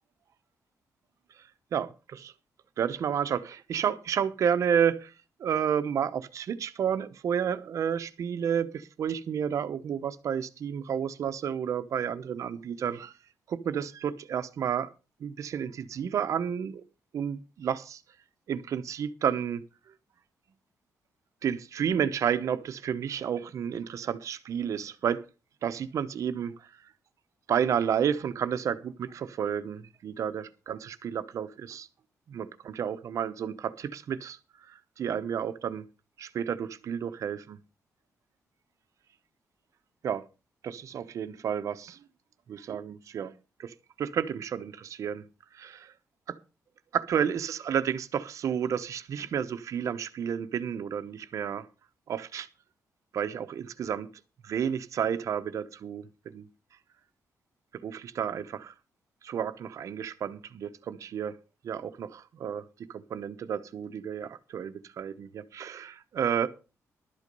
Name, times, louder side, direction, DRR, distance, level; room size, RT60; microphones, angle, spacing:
voice 1, 1.7-2.3 2.8-5.1 5.4-13.1 13.5-14.9 15.2-16.8 17.1-18.0 18.5-19.6 21.4-25.2 25.6-26.5 27.5-31.9 32.3-32.5 32.8-34.4 34.7-35.8 36.2-37.6 40.0-40.2 40.6-42.0 42.5-43.3 43.6-45.2 45.5-45.9 46.3-46.4 46.9-51.7 52.1-52.5 53.1-54.1 54.4-56.5 57.8-58.7 59.2-61.3 61.6-62.6 62.9-66.5, right 8 dB, 65° right, 0.9 m, -31 dB
12.0 x 8.4 x 5.3 m
cardioid pair, 130°, 6 cm